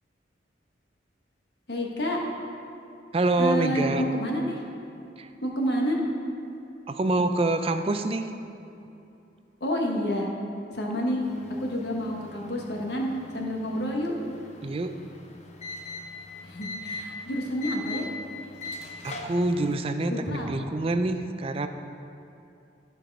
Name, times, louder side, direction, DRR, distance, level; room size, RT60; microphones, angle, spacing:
voice 1, 1.7-2.2 3.4-4.6 5.4-6.0 9.6-10.3 10.7-11.2 11.6-14.1 16.4-18.1 20.1-20.5, equal, 65° left, -1 dB, 1.3 m, -29 dB
voice 2, 3.1-4.1 5.2-5.3 6.9-8.3 14.6-15.0 19.0-21.7, right 2 dB, 30° right, 8 dB, 0.4 m, -26 dB
sound 1, 11.2-19.7, left 2 dB, 40° left, 0.7 m, -41 dB
13.0 x 4.7 x 5.3 m, 2.7 s
head